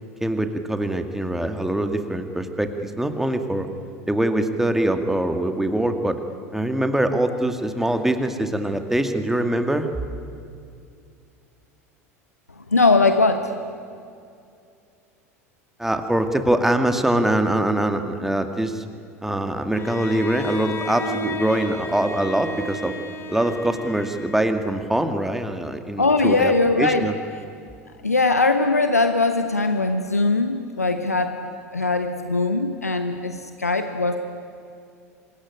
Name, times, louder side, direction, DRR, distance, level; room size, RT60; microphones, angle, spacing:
voice 1, 0.2-3.7 4.1-6.2 6.5-9.9 15.8-18.8 19.2-23.0 23.3-27.2, right 1 dB, 5° right, 7 dB, 2.2 m, -23 dB
voice 2, 12.7-13.5 26.0-27.1 28.0-31.4 31.7-34.2, left 3 dB, 85° left, 8 dB, 1.1 m, -20 dB
Bowed string instrument, 19.7-24.7, left 1 dB, 30° left, 3.7 m, -33 dB
25.5 x 22.0 x 9.9 m, 2.4 s
figure-of-eight pair, 75°, 8 cm